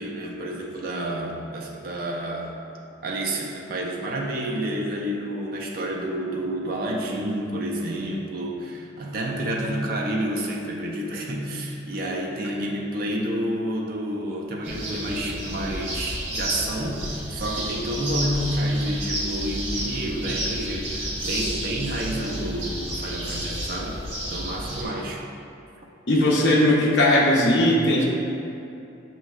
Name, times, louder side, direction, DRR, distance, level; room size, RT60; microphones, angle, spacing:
voice 1, 0.0-2.5 3.0-24.0 24.3-25.3 26.1-26.6, right 1 dB, 45° right, -1 dB, 0.4 m, -29 dB
sound 1, 14.6-24.8, right 1 dB, 60° right, 1.5 m, -31 dB
voice 2, 26.1-28.0, left 1 dB, 60° left, -5 dB, 0.5 m, -18 dB
6.2 x 3.0 x 2.3 m, 2.8 s
head